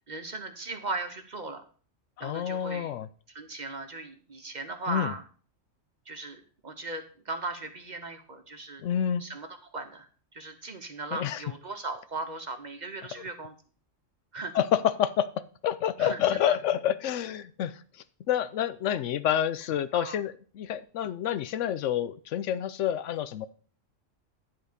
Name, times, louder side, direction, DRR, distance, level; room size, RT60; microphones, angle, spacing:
voice 1, 0.1-1.6 2.2-2.9 3.3-5.2 6.1-6.4 6.6-8.8 9.2-10.1 10.3-13.5 14.3-14.5 16.0-16.2 16.5-16.6 19.9-20.2, right 3 dB, 40° right, 6 dB, 0.8 m, -37 dB
voice 2, 2.2-3.1 4.9-5.1 8.8-9.2 11.1-11.4 13.2-13.3 14.5-15.3 15.6-17.7 18.3-23.5, left 10 dB, 75° left, 14 dB, 0.9 m, -28 dB
10.5 x 3.8 x 6.5 m, 0.42 s
omnidirectional pair, 1.3 m